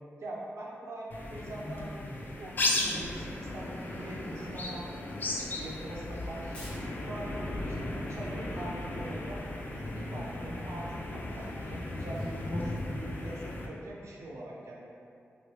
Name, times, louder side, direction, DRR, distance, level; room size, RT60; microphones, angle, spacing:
voice 1, 0.2-2.0 2.3-6.7 7.0-9.4 9.7-14.9, right 1 dB, 80° right, -4 dB, 0.5 m, -43 dB
sound 1, 1.1-13.7, left 2 dB, 40° left, 0.3 m, -36 dB
Tearing, 6.5-13.0, equal, 25° left, 1.0 m, -54 dB
3.1 x 2.7 x 2.8 m, 2.4 s
wide cardioid pair, 175°, 5 cm